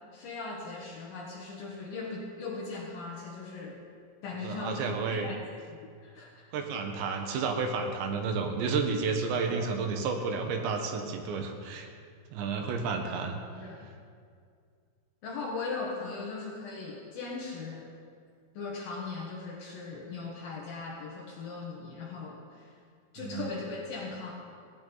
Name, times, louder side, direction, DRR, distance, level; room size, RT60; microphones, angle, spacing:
voice 1, 0.1-3.8 4.2-5.4 5.7-6.5 9.5-9.7 13.0-13.2 13.5-13.9 15.2-17.9 18.5-22.8 23.1-24.3, left 4 dB, 65° left, -2 dB, 2.6 m, -39 dB
voice 2, 4.4-5.3 6.5-11.9 12.3-13.4 23.2-23.5, right 4 dB, 70° right, 4 dB, 3.2 m, -31 dB
17.5 x 17.0 x 4.0 m, 2.2 s
omnidirectional pair, 5.7 m